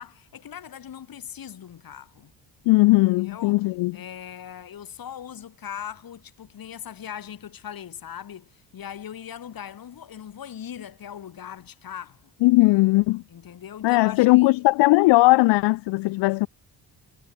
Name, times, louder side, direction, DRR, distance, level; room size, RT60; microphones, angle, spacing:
voice 1, 0.0-2.3 3.2-3.6 3.9-12.3 13.3-14.6, left 9 dB, 55° left, 7.0 m, -40 dB
voice 2, 2.7-4.0 12.4-13.2 13.8-16.5, left 22 dB, 85° left, 0.7 m, -18 dB
cardioid pair, 90°, 40 cm